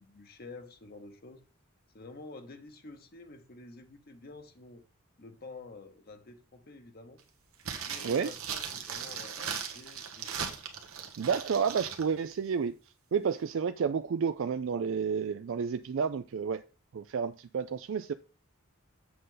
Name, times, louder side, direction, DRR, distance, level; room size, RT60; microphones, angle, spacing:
voice 1, 0.0-1.4 1.9-4.8 5.2-7.2 7.7-10.6, left 3 dB, 45° left, 1.0 m, -49 dB
sound 1, 7.6-12.0 12.3-12.4, right 7 dB, 90° right, 1.4 m, -38 dB
voice 2, 11.2-12.8 13.1-16.6 16.9-18.1, right 6 dB, 65° right, 0.4 m, -30 dB
7.8 x 6.6 x 3.9 m
head